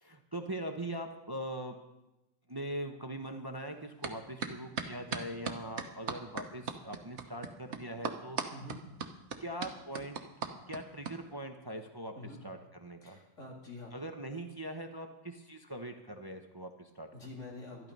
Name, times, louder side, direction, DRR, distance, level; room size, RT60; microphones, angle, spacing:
voice 1, 0.0-1.8 2.5-8.4 9.4-10.1 10.7-12.1 12.4-13.2 13.9-17.1, right 1 dB, 20° right, 4 dB, 0.7 m, -41 dB
sound 1, 4.0-4.1 4.4-11.1, right 6 dB, 65° right, 1.3 m, -37 dB
voice 2, 13.0-13.9 17.1-17.9, left 2 dB, 75° left, -2 dB, 3.2 m, -46 dB
12.5 x 12.0 x 5.3 m, 0.96 s
omnidirectional pair, 1.3 m